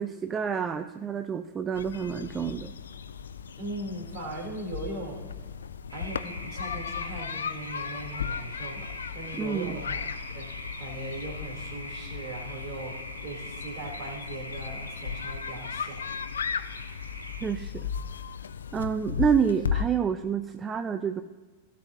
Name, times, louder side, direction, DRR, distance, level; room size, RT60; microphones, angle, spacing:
voice 1, 0.0-2.7 9.4-9.8 17.4-17.8 18.7-21.2, right 7 dB, 20° right, 9 dB, 0.5 m, -28 dB
sound 1, 1.7-19.8, left 7 dB, 70° left, 0.4 m, -36 dB
voice 2, 3.6-5.2 5.9-10.5 10.8-16.0, right 1 dB, 45° right, -1 dB, 3.0 m, -39 dB
sound 2, 5.9-17.5, left 1 dB, 90° left, 1.5 m, -42 dB
16.5 x 7.6 x 2.7 m, 1.3 s
figure-of-eight pair, 90°, 0 cm